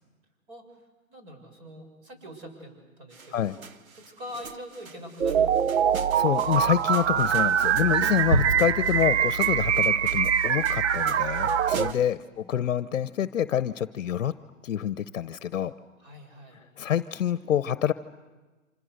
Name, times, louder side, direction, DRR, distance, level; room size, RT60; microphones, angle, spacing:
voice 1, 0.5-0.8 1.1-3.6 3.9-5.5 6.3-6.6 8.3-8.4 11.2-12.1 12.4-12.5 16.0-16.6, equal, 40° right, 5 dB, 7.2 m, -44 dB
sound 1, 3.1-12.2, right 3 dB, 85° right, 1.4 m, -36 dB
sound 2, 5.2-11.9, right 8 dB, 55° right, 0.9 m, -24 dB
voice 2, 6.1-14.3 14.6-15.7 16.8-17.9, left 10 dB, 65° left, 14 dB, 0.9 m, -27 dB
29.5 x 26.5 x 6.6 m, 1.2 s
hypercardioid pair, 145°, 41 cm